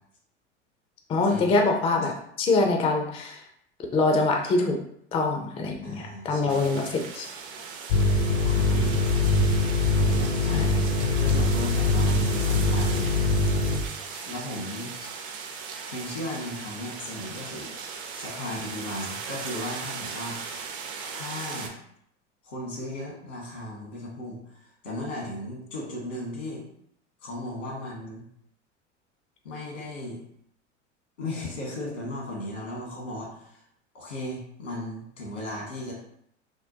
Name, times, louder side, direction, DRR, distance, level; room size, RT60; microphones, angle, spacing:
voice 1, 1.1-3.4 3.9-4.8 5.1-7.3 10.5-10.7, left 3 dB, 15° left, 2 dB, 0.4 m, -24 dB
voice 2, 5.8-6.7 8.4-9.0 9.8-13.1 14.1-14.9 15.9-17.7 18.1-20.4 21.1-21.7 22.4-26.6 27.2-28.2 29.4-30.2 31.2-33.6 33.9-35.9, left 1 dB, 85° left, -2 dB, 1.4 m, -36 dB
sound 1, 6.5-21.7, right 5 dB, 50° right, 0.6 m, -38 dB
sound 2, 7.9-13.8, left 2 dB, 60° left, 0.6 m, -23 dB
3.6 x 2.1 x 2.7 m, 0.70 s
figure-of-eight pair, 80°, 37 cm